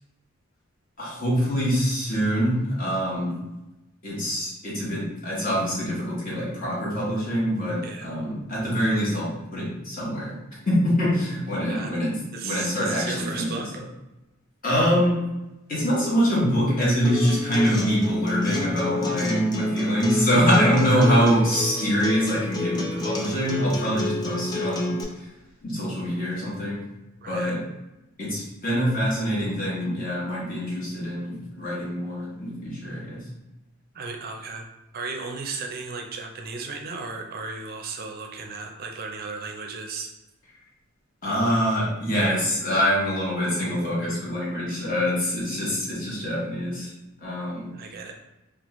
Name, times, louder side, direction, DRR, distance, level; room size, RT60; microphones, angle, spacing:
voice 1, 1.0-3.4 4.0-10.4 10.6-12.1 12.4-13.6 14.6-15.2 15.7-25.3 25.6-26.8 27.3-27.6 28.2-33.2 41.2-46.9 47.2-47.7, equal, 40° left, -6 dB, 1.1 m, -24 dB
voice 2, 7.8-8.2 11.7-12.0 12.3-13.7 20.6-21.3 27.2-27.5 33.9-34.7 34.9-40.1 47.7-48.1, right 4 dB, 45° right, 2 dB, 0.4 m, -35 dB
Acoustic guitar, 17.0-25.0, left 1 dB, 20° left, 0.3 m, -28 dB
3.0 x 2.3 x 3.0 m, 0.98 s
head